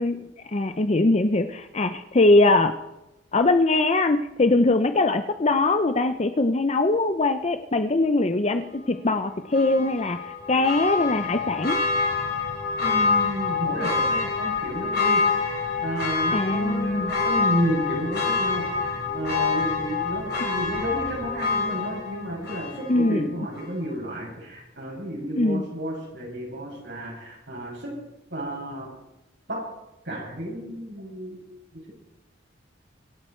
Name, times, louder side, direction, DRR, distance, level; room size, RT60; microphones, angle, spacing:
voice 1, 0.0-2.7 3.3-11.8 16.3-17.1 22.9-23.3 25.4-25.6, left 2 dB, 35° left, 9 dB, 0.6 m, -22 dB
Church bell, 9.5-23.2 23.6-23.7, left 4 dB, 55° left, 4.4 m, -26 dB
voice 2, 12.8-15.2 15.8-27.9 28.3-28.9 29.5-29.6 30.0-31.9, equal, 70° right, -4 dB, 7.2 m, -31 dB
25.0 x 8.9 x 4.5 m, 0.93 s
head